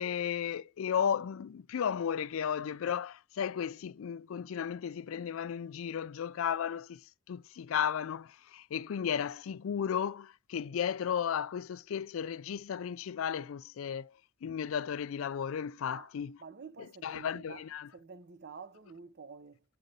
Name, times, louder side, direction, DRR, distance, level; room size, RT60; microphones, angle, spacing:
voice 1, 0.0-7.0 7.3-14.1 14.4-16.4 17.0-17.9, left 8 dB, 75° left, 0.4 m, -34 dB
voice 2, 16.4-19.6, right 5 dB, 50° right, 0.7 m, -49 dB
9.0 x 3.9 x 5.3 m
head